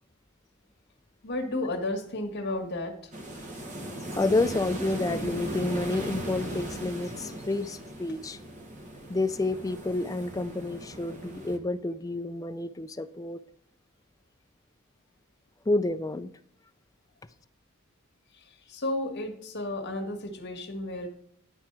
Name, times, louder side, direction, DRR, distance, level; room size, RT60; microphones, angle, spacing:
voice 1, 1.2-2.9 18.3-21.1, left 2 dB, 50° left, 2 dB, 1.7 m, -33 dB
sound 1, 3.1-11.6, right 1 dB, 35° right, 1.3 m, -38 dB
voice 2, 4.1-8.4 9.1-13.4 15.7-16.3, left 2 dB, 15° left, 11 dB, 0.4 m, -29 dB
10.5 x 4.5 x 6.0 m, 0.65 s
head